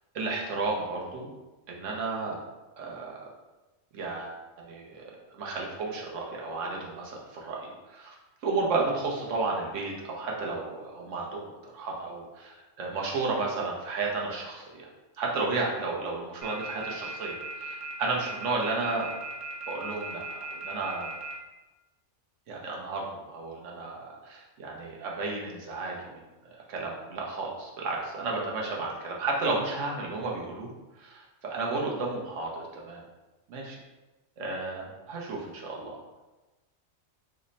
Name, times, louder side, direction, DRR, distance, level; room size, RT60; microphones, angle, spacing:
voice 1, 0.1-1.3 1.7-2.4 2.8-3.3 3.9-8.1 8.4-14.9 15.2-19.1 19.7-21.1 22.5-26.2 26.5-30.7 31.0-33.0 33.5-33.8 34.4-36.0, right 3 dB, 80° right, -2 dB, 1.0 m, -33 dB
sound 1, 16.4-21.3, right 4 dB, 40° right, 0.5 m, -37 dB
3.3 x 2.0 x 3.8 m, 1.1 s
omnidirectional pair, 1.3 m